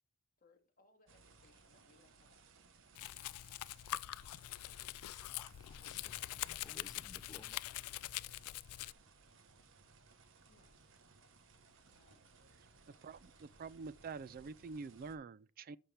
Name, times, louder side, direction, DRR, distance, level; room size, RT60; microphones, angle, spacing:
voice 1, 0.4-2.4 10.5-11.0 11.9-12.2, left 3 dB, 40° left, 1.9 m, -70 dB
sound 1, 1.1-15.2, right 4 dB, 60° right, 1.1 m, -64 dB
Domestic sounds home sounds, 3.0-8.9, left 15 dB, 80° left, 0.3 m, -44 dB
voice 2, 5.1-7.6, left 2 dB, 15° left, 0.7 m, -58 dB
voice 3, 13.0-15.8, right 4 dB, 40° right, 0.3 m, -47 dB
12.5 x 5.9 x 3.3 m
head